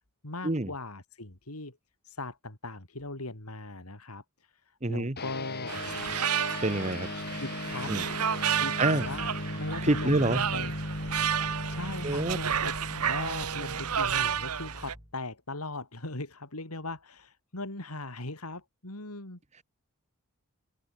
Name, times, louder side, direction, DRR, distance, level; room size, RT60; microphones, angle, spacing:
voice 1, 0.0-1.8 2.0-5.8 7.4-7.9 8.5-9.3 9.6-11.0 11.7-12.7 13.0-19.4, left 2 dB, 80° left, 3.9 m, -39 dB
voice 2, 4.8-5.2 6.6-7.1 7.9-8.0 8.8-9.1 9.8-10.4 12.0-12.4, right 2 dB, 30° right, 1.3 m, -27 dB
sound 1, 5.2-14.9, left 1 dB, 45° left, 4.7 m, -37 dB
sound 2, 5.7-15.0, right 8 dB, 85° right, 1.2 m, -31 dB
sound 3, 9.0-15.2, equal, 15° right, 6.5 m, -47 dB
head